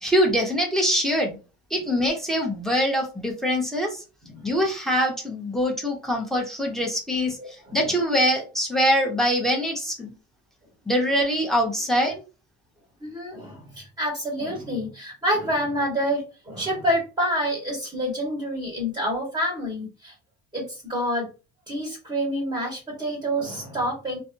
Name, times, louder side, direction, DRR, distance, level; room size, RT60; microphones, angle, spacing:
voice 1, 0.0-1.4 1.7-4.0 4.4-7.4 7.7-10.1 10.9-12.2, equal, ahead, 0 dB, 0.9 m, -23 dB
voice 2, 4.2-4.6 7.4-7.9 13.0-20.1 20.5-21.3 21.7-24.2, equal, 15° right, -4 dB, 1.4 m, -28 dB
2.5 x 2.2 x 2.6 m, 0.32 s
cardioid pair, 110°, 29 cm